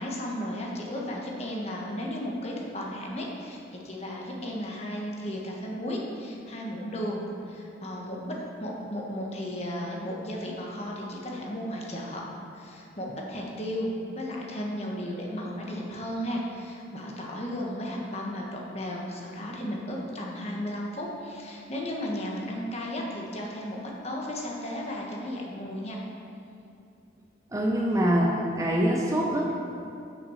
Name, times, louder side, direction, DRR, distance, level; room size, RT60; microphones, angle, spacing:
voice 1, 0.0-12.2 12.5-26.0, equal, 35° left, -2 dB, 1.2 m, -34 dB
voice 2, 27.5-29.5, equal, 15° right, -1 dB, 0.7 m, -24 dB
6.7 x 5.9 x 6.3 m, 2.6 s
head